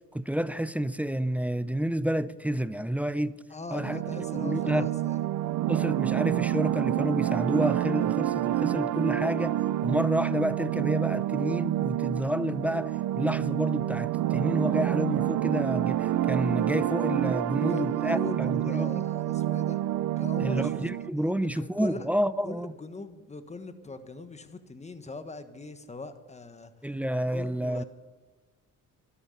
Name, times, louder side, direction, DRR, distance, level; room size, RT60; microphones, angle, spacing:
voice 1, 0.0-3.4 3.7-4.0 4.3-4.9 5.7-9.6 9.8-19.0 20.4-22.7 26.8-27.8, right 1 dB, 5° right, 0.5 m, -29 dB
voice 2, 3.5-5.2 17.5-19.8 20.2-22.1 22.4-26.7 27.3-27.8, left 3 dB, 20° left, 1.4 m, -41 dB
sound 1, 3.7-21.1, right 13 dB, 75° right, 0.6 m, -28 dB
12.5 x 12.0 x 8.6 m
cardioid pair, 90°, 30 cm